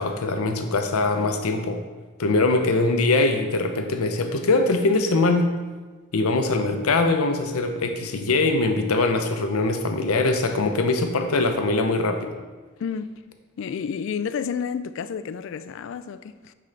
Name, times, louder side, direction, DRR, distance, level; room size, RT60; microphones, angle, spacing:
voice 1, 0.0-1.8 2.2-5.5 6.1-12.4, left 3 dB, 85° left, 0.7 m, -22 dB
voice 2, 12.8-13.1 13.6-16.5, left 6 dB, 60° left, 0.3 m, -30 dB
9.4 x 3.8 x 3.3 m
head